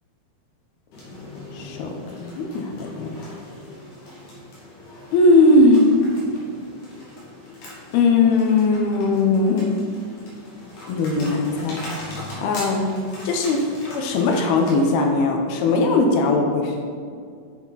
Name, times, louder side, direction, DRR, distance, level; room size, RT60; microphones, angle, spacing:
sound 1, 0.9-14.9, left 1 dB, 55° left, 2.8 m, -39 dB
voice 1, 1.5-3.4 5.1-5.9 7.9-9.8 10.9-12.9 13.2-16.9, left 2 dB, 80° left, 2 dB, 2.7 m, -19 dB
8.4 x 5.8 x 4.1 m, 2.2 s
omnidirectional pair, 4.6 m